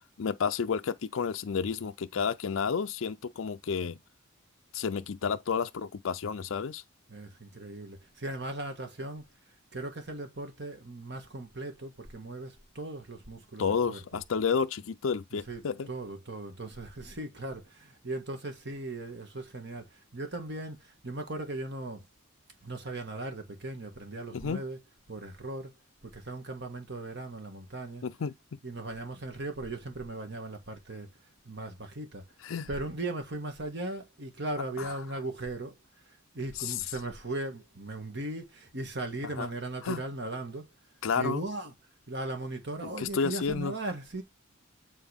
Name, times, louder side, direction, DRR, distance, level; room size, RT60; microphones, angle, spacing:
voice 1, 0.2-4.0 4.7-6.8 13.6-15.9 24.3-24.6 28.0-28.6 32.4-32.7 34.8-34.9 36.6-36.8 39.4-39.5 39.8-40.0 41.0-41.4 42.8-43.7, left 6 dB, 75° left, 0.5 m, -31 dB
voice 2, 7.1-9.3 9.7-14.2 15.3-15.6 15.9-22.0 22.6-24.8 25.1-25.7 26.0-28.0 28.6-31.1 31.5-32.3 32.7-35.8 36.1-40.7 41.2-41.7 42.1-44.2, right 2 dB, 55° right, 1.8 m, -38 dB
9.2 x 4.0 x 3.5 m
head